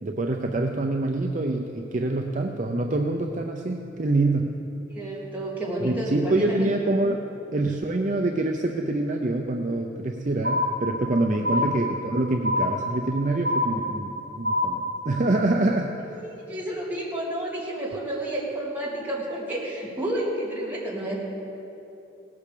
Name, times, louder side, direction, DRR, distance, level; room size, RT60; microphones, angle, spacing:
voice 1, 0.0-4.5 5.8-7.2 7.5-15.9, right 2 dB, 40° right, 2 dB, 0.6 m, -25 dB
voice 2, 4.9-6.1 6.5-6.7 11.4-11.6 16.1-21.2, right 1 dB, 10° right, -6 dB, 2.7 m, -31 dB
sound 1, 10.4-11.1 11.4-12.1 12.4-13.1 13.4-14.1 14.4-15.1, left 1 dB, 75° right, 1.9 m, -26 dB
17.5 x 8.6 x 6.8 m, 2.9 s
head